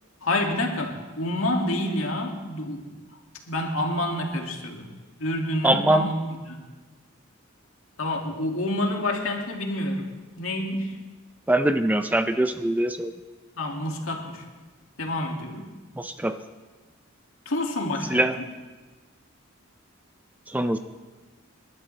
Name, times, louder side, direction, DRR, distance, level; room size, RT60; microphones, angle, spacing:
voice 1, 0.2-3.2 3.5-4.9 5.2-6.6 8.0-10.1 10.4-11.0 13.6-14.4 15.0-15.7 17.5-18.3, left 1 dB, 80° left, 1 dB, 2.2 m, -28 dB
voice 2, 5.6-6.1 11.5-13.1 16.0-16.4 18.1-18.3 20.5-20.8, right 1 dB, 10° right, 9 dB, 0.4 m, -23 dB
27.0 x 12.0 x 3.3 m, 1.3 s
head